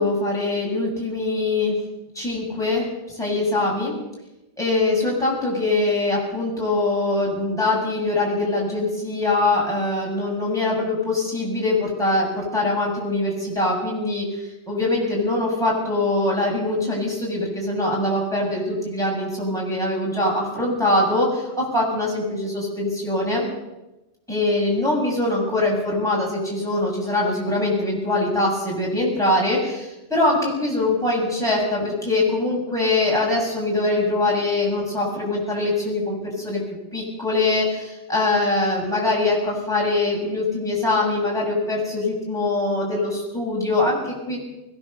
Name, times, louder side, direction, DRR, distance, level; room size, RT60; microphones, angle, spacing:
voice 1, 0.0-1.8 2.1-4.0 4.6-23.5 24.3-36.6 36.9-44.4, left 2 dB, 5° left, -4 dB, 7.0 m, -23 dB
21.0 x 18.5 x 6.9 m, 0.99 s
omnidirectional pair, 1.1 m